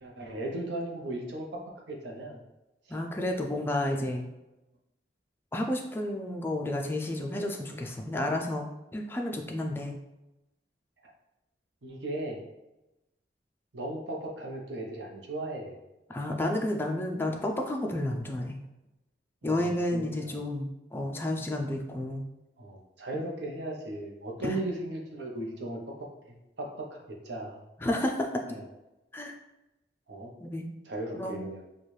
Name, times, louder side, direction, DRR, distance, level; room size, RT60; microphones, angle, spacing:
voice 1, 0.0-1.6 1.9-2.4 2.9-3.0 11.8-12.4 13.7-15.8 19.4-20.4 22.6-25.8 26.3-27.6 28.5-28.6 30.1-30.3 30.9-31.7, right 1 dB, 70° right, 0 dB, 0.8 m, -37 dB
voice 2, 2.9-4.2 5.5-8.7 8.9-10.0 16.1-18.6 19.4-22.2 24.4-24.6 27.8-28.4 29.1-29.3 30.4-30.7 31.1-31.5, left 1 dB, 10° left, 2 dB, 0.3 m, -31 dB
4.4 x 2.3 x 3.1 m, 0.96 s
head